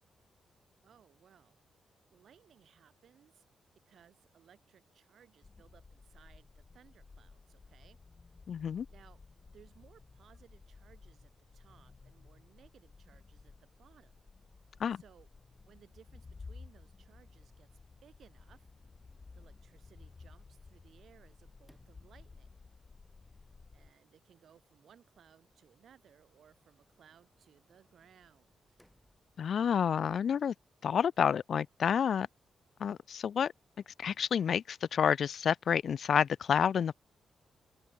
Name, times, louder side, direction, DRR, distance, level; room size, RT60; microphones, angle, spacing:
voice 1, 0.8-1.6 2.1-3.4 3.8-8.0 8.9-14.2 14.9-15.3 15.6-17.7 18.0-18.7 19.3-22.5 23.2-23.4 23.7-28.8, right 8 dB, 65° right, 6.7 m, -63 dB
sound 1, 5.4-23.9, left 4 dB, 30° left, 3.5 m, -55 dB
voice 2, 8.5-8.9 14.8-15.0 29.4-30.5 30.8-32.3 32.8-33.5 34.0-36.9, left 7 dB, 60° left, 0.3 m, -29 dB
Sliding door, 18.4-30.0, equal, ahead, 5.8 m, -73 dB
open air
wide cardioid pair, 140°, 0 cm